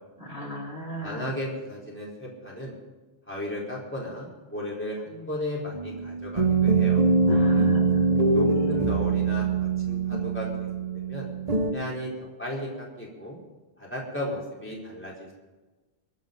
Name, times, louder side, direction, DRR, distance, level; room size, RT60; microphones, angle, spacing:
voice 1, 0.2-1.3 7.3-8.8, equal, 60° left, -4 dB, 4.5 m, -37 dB
voice 2, 1.0-2.8 3.3-7.0 8.3-10.5 10.9-11.3 11.7-13.4 13.8-15.3, left 1 dB, 10° left, -4 dB, 4.4 m, -35 dB
sound 1, 5.7-11.7, right 4 dB, 35° right, 1.2 m, -23 dB
24.5 x 9.2 x 5.4 m, 1.2 s
omnidirectional pair, 1.1 m